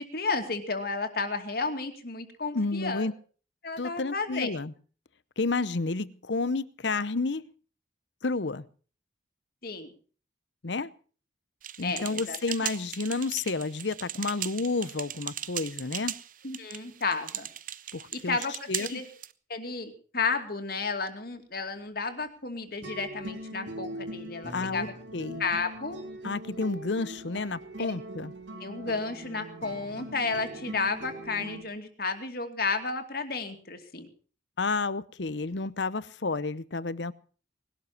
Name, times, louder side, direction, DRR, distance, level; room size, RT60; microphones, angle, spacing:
voice 1, 0.0-3.1 3.6-4.6 9.6-9.9 11.8-12.4 16.4-17.5 18.3-19.1 19.5-24.9 25.4-26.0 27.8-27.9 28.6-34.1, left 4 dB, 55° left, 6 dB, 2.5 m, -32 dB
voice 2, 2.5-3.1 3.8-4.7 5.4-7.5 8.2-8.6 10.6-10.9 11.8-16.1 17.9-18.4 18.7-19.0 24.5-24.9 25.1-25.4 26.2-28.3 34.6-37.1, left 3 dB, 75° left, 18 dB, 0.9 m, -30 dB
sound 1, 11.6-19.3, right 11 dB, 45° right, 0.8 m, -38 dB
sound 2, 22.8-31.6, right 1 dB, 80° right, 3.1 m, -41 dB
20.0 x 12.5 x 5.9 m, 0.42 s
head